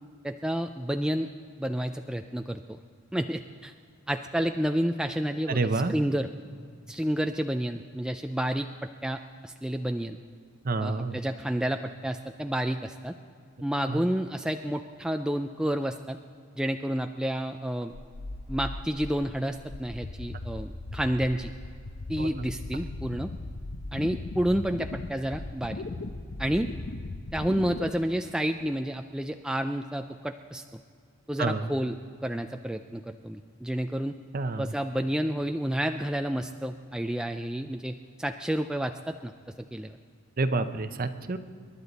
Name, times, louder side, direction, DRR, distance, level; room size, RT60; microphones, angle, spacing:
voice 1, 0.2-1.3 1.6-2.8 3.1-3.7 4.1-5.6 5.9-6.3 6.9-10.2 10.8-13.1 13.6-16.2 16.6-17.9 18.5-21.5 22.1-23.3 23.9-25.8 26.4-26.7 27.3-30.6 31.3-32.0 32.2-34.1 34.6-39.3 39.7-40.0, equal, 5° right, 6 dB, 0.3 m, -30 dB
voice 2, 5.5-5.9 10.6-11.2 13.9-14.0 22.2-22.3 31.4-31.6 34.3-34.7 40.4-41.4, right 3 dB, 45° right, 10 dB, 0.7 m, -28 dB
sound 1, 17.9-27.9, left 2 dB, 60° left, 0.7 m, -38 dB
27.0 x 11.5 x 4.1 m, 2.1 s
head